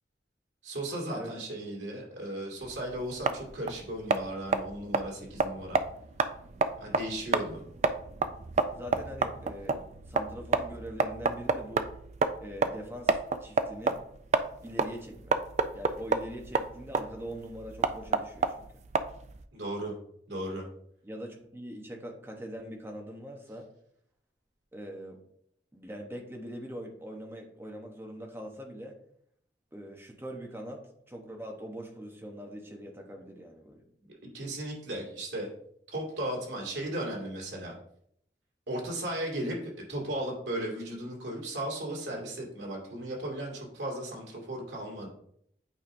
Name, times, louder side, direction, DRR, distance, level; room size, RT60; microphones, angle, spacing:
voice 1, 0.6-5.8 6.8-7.6 19.5-20.0 20.3-20.7 34.1-35.5 35.9-37.7 38.7-45.1, right 1 dB, 85° right, -1 dB, 2.2 m, -36 dB
sound 1, 2.6-19.4, right 4 dB, 40° right, 0.3 m, -30 dB
voice 2, 8.7-11.9 12.4-14.0 14.6-15.4 15.7-18.7 21.0-23.7 24.7-25.2 25.7-28.9 29.7-33.8, equal, 15° right, 2 dB, 0.8 m, -42 dB
8.4 x 5.0 x 2.6 m, 0.69 s
head